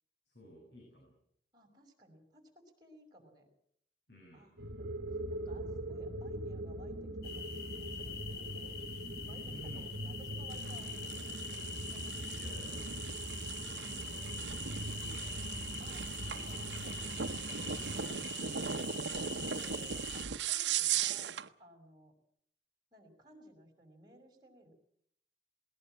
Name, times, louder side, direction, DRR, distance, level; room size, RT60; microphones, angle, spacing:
voice 1, 0.3-1.2 4.1-4.5 9.5-9.9 12.4-12.8 13.5-14.6 15.0-15.4 15.6-16.0, equal, 80° left, 1 dB, 6.9 m, -54 dB
voice 2, 1.5-3.5 4.3-4.6 5.1-8.8 9.2-12.0 15.8-19.2 19.6-22.1 22.9-24.7, right 1 dB, 25° right, 2 dB, 5.6 m, -59 dB
sound 1, 4.6-18.0, right 1 dB, 60° right, 1.6 m, -42 dB
sound 2, 7.2-20.2, left 6 dB, 60° left, 2.8 m, -45 dB
sound 3, 10.5-21.5, right 8 dB, 90° right, 0.9 m, -39 dB
20.5 x 19.0 x 7.9 m, 0.68 s
head